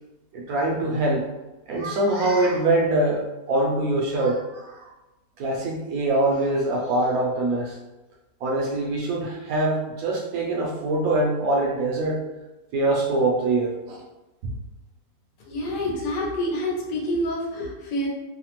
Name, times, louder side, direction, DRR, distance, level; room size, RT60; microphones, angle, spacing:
voice 1, 0.3-1.3 1.7-4.8 5.4-7.8 8.4-12.2 12.7-14.0 14.4-14.6, right 2 dB, 70° right, -2 dB, 1.0 m, -24 dB
voice 2, 15.4-18.1, left 1 dB, 80° left, -3 dB, 1.4 m, -27 dB
3.3 x 2.1 x 2.9 m, 1.0 s
omnidirectional pair, 1.8 m